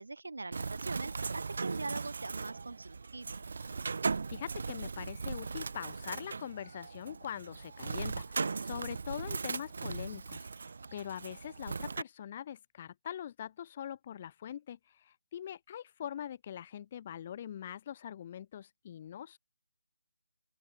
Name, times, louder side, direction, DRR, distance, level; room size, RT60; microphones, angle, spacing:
voice 1, 0.0-3.4, right 3 dB, 80° right, 1.4 m, -42 dB
Bird, 0.5-12.0, right 4 dB, 55° right, 0.5 m, -38 dB
voice 2, 4.3-19.4, left 10 dB, 25° left, 0.8 m, -43 dB
open air
figure-of-eight pair, 170°, 0 cm